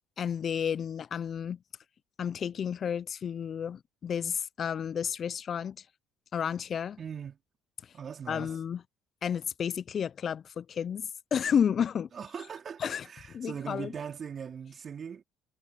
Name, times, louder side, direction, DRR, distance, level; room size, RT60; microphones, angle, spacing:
voice 1, 0.2-1.6 2.2-5.8 6.3-7.0 8.3-8.8 9.2-12.1 12.8-13.1 13.3-13.9, left 8 dB, 50° left, 0.6 m, -31 dB
voice 2, 7.0-7.4 7.9-8.5 12.1-15.2, right 7 dB, 45° right, 3.5 m, -40 dB
hypercardioid pair, 65°, 0 cm